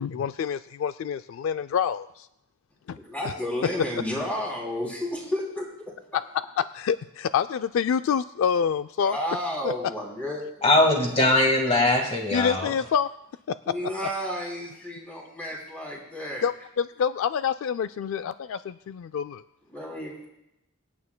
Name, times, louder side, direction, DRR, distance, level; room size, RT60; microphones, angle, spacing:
voice 1, 0.0-2.3 2.9-3.0 6.1-6.2 6.6-9.2 12.3-13.1 16.4-19.4, left 7 dB, 65° left, 13 dB, 0.3 m, -27 dB
voice 2, 3.0-5.9 9.0-10.4 13.6-16.5 19.7-20.3, left 1 dB, 5° left, -2 dB, 2.8 m, -32 dB
voice 3, 10.6-12.7, left 2 dB, 30° left, 2 dB, 1.7 m, -21 dB
25.5 x 8.7 x 2.2 m, 0.84 s
head